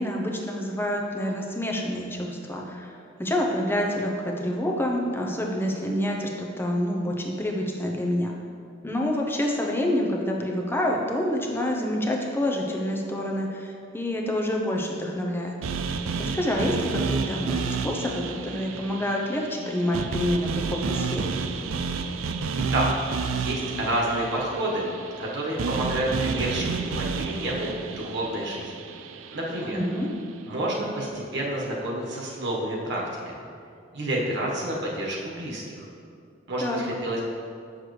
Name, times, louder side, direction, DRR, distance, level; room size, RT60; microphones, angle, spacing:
voice 1, 0.0-2.9 3.2-8.3 8.8-15.5 16.3-21.4 29.6-30.1 36.6-36.9, left 1 dB, 10° left, 0 dB, 0.7 m, -27 dB
sound 1, 15.6-29.8, right 5 dB, 85° right, 0.4 m, -30 dB
voice 2, 23.3-24.9 25.2-28.7 29.3-29.8 30.5-33.3 33.9-35.9 36.5-37.2, right 1 dB, 65° right, -3 dB, 1.4 m, -29 dB
7.7 x 6.5 x 3.3 m, 2.4 s
head